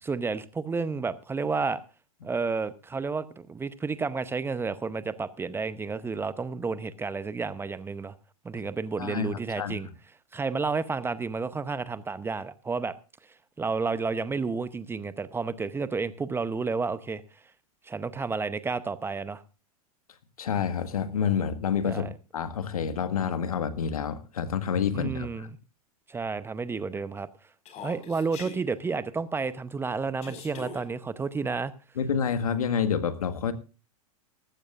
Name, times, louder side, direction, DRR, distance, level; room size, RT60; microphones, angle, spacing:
voice 1, 0.0-1.8 2.2-8.1 8.4-9.9 10.3-12.9 13.6-17.2 17.9-19.4 21.9-22.1 24.9-25.5 26.1-27.3 27.8-31.7, right 4 dB, 10° right, 0.8 m, -31 dB
voice 2, 9.0-9.9 20.4-22.1 22.3-25.5 32.0-33.5, left 7 dB, 75° left, 1.7 m, -28 dB
Human voice, 27.6-28.6 30.2-30.8, left 5 dB, 35° left, 5.1 m, -41 dB
18.5 x 15.0 x 2.5 m
figure-of-eight pair, 100°, 19 cm